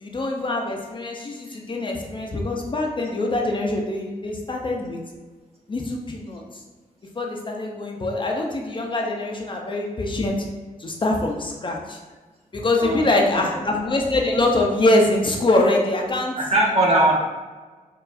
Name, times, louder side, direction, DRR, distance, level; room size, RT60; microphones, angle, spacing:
voice 1, 0.0-5.0 5.7-6.4 7.2-10.5 10.8-12.0 12.5-16.4, left 2 dB, 35° left, 0 dB, 0.5 m, -23 dB
voice 2, 12.8-13.5 16.3-17.1, right 1 dB, 45° right, -4 dB, 0.9 m, -20 dB
4.6 x 2.4 x 2.4 m, 1.3 s
wide cardioid pair, 110°, 15 cm